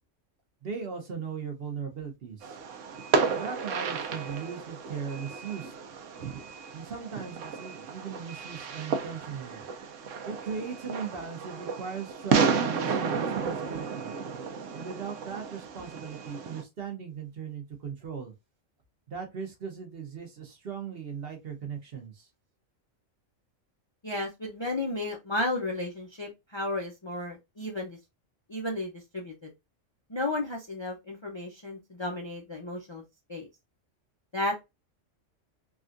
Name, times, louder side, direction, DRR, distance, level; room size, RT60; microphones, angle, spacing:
voice 1, 0.6-2.6 3.4-5.7 6.7-9.7 10.2-14.1 14.7-18.3 19.1-22.3, right 6 dB, 55° right, 1.0 m, -38 dB
Fireworks, 2.4-16.6, right 5 dB, 75° right, 1.0 m, -32 dB
voice 2, 24.0-28.0 28.5-29.5 30.1-33.0 33.3-33.5 34.3-34.6, left 2 dB, 35° left, 0.4 m, -33 dB
3.5 x 2.3 x 2.5 m
omnidirectional pair, 1.3 m